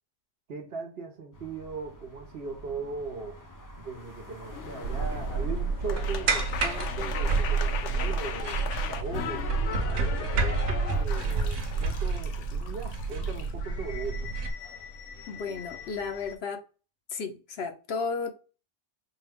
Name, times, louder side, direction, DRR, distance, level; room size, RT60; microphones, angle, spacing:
voice 1, 0.5-3.4 3.8-9.5 9.9-14.3, right 4 dB, 60° right, 0.9 m, -39 dB
sound 1, 1.3-10.4, equal, 25° left, 0.5 m, -49 dB
sound 2, 4.5-16.3, left 7 dB, 85° left, 0.9 m, -39 dB
sound 3, 4.8-14.5, right 4 dB, 85° right, 1.0 m, -29 dB
voice 2, 15.3-16.6 17.1-18.4, left 5 dB, 65° left, 0.8 m, -33 dB
4.5 x 2.2 x 3.4 m
omnidirectional pair, 1.2 m